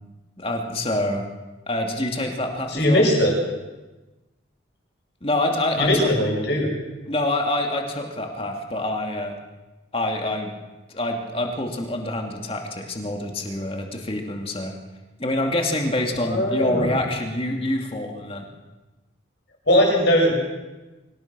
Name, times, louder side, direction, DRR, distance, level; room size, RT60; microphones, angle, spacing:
voice 1, 0.4-1.3 1.7-3.1 5.2-6.1 7.1-9.3 9.9-10.5 10.9-14.7 15.2-18.5, left 1 dB, 30° left, 2 dB, 2.6 m, -26 dB
voice 2, 2.7-3.4 5.8-6.7 16.2-16.9 19.7-20.3, left 1 dB, 60° left, 0 dB, 7.2 m, -19 dB
25.5 x 17.5 x 6.2 m, 1.1 s
head